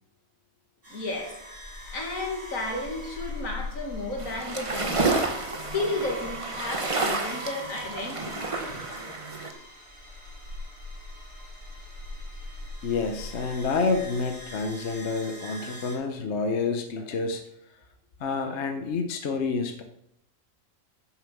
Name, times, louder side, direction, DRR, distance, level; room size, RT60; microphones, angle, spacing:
sound 1, 0.8-16.0, left 1 dB, 40° right, 4.9 m, -41 dB
voice 1, 0.9-1.4 1.9-5.2 5.7-8.5, left 2 dB, 85° left, 1 dB, 2.5 m, -33 dB
sound 2, 4.2-9.5, right 3 dB, 25° right, 1.2 m, -30 dB
voice 2, 12.8-17.4 18.2-19.8, left 4 dB, 60° left, 6 dB, 1.1 m, -28 dB
10.5 x 7.2 x 6.0 m, 0.80 s
omnidirectional pair, 1.4 m